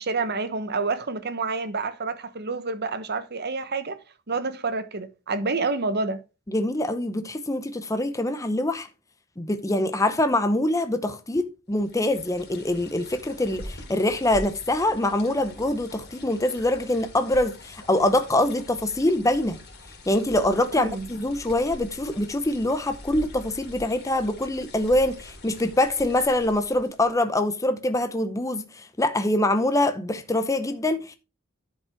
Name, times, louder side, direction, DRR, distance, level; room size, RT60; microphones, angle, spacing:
voice 1, 0.0-4.0 4.3-6.2 20.7-21.1, right 3 dB, 50° right, 1.1 m, -28 dB
voice 2, 6.5-8.9 9.4-19.6 20.1-31.2, left 1 dB, 15° left, 0.7 m, -24 dB
sound 1, 11.7-27.1, left 1 dB, 55° left, 3.4 m, -44 dB
11.0 x 5.4 x 4.5 m
head